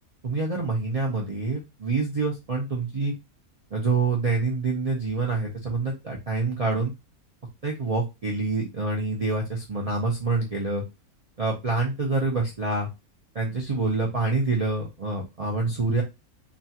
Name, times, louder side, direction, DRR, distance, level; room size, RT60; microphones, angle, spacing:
voice 1, 0.2-3.1 3.7-6.9 7.6-10.8 11.4-12.9 13.3-16.0, right 3 dB, 50° right, -2 dB, 0.4 m, -26 dB
3.1 x 2.3 x 2.7 m, 0.24 s
omnidirectional pair, 1.5 m